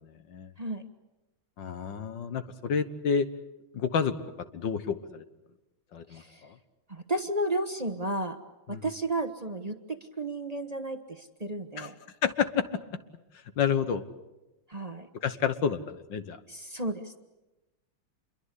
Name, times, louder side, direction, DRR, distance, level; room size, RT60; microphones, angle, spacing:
voice 1, 1.6-3.3 3.7-4.1 4.5-5.2 5.9-6.2 8.7-8.8 11.8-11.9 12.2-12.6 13.6-14.0 15.2-16.4, left 7 dB, 65° left, 11 dB, 1.8 m, -29 dB
voice 2, 6.1-6.5 6.9-8.4 8.7-11.9 14.7-15.1 16.5-17.2, right 1 dB, 25° right, 8 dB, 1.0 m, -33 dB
27.5 x 23.0 x 8.3 m, 1.0 s
omnidirectional pair, 2.3 m